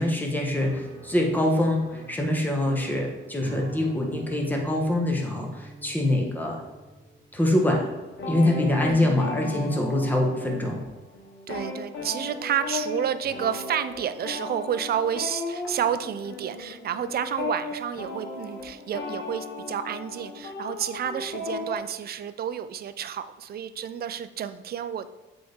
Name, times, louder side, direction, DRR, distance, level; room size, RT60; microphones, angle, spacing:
voice 1, 0.0-1.8 2.1-6.6 7.3-7.8 8.3-10.8, left 1 dB, 10° left, 0 dB, 1.4 m, -24 dB
Piano, 0.6-7.3, right 2 dB, 20° right, 1.5 m, -44 dB
sound 1, 8.1-10.9 11.1-21.8, left 3 dB, 65° left, 1.2 m, -35 dB
voice 2, 8.9-9.8 11.5-25.1, right 9 dB, 50° right, 13 dB, 0.4 m, -30 dB
7.6 x 4.2 x 3.6 m, 1.1 s
cardioid pair, 90°, 20 cm